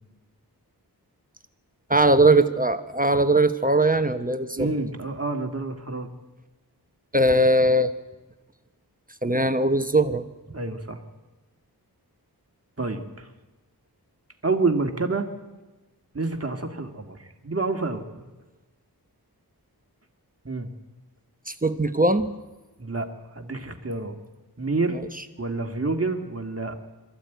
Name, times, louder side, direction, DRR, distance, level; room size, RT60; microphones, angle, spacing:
voice 1, 1.9-4.7 7.1-7.9 9.2-10.2 21.5-22.3 24.9-25.0, right 2 dB, 20° right, 9 dB, 1.1 m, -20 dB
voice 2, 4.6-6.1 10.5-11.0 12.8-13.3 14.4-15.3 16.1-18.3 20.4-20.7 22.8-23.1 23.3-24.2 24.6-25.0 25.4-26.7, right 3 dB, 35° right, 5 dB, 2.2 m, -28 dB
22.5 x 14.0 x 9.3 m, 1.1 s
wide cardioid pair, 70°, 39 cm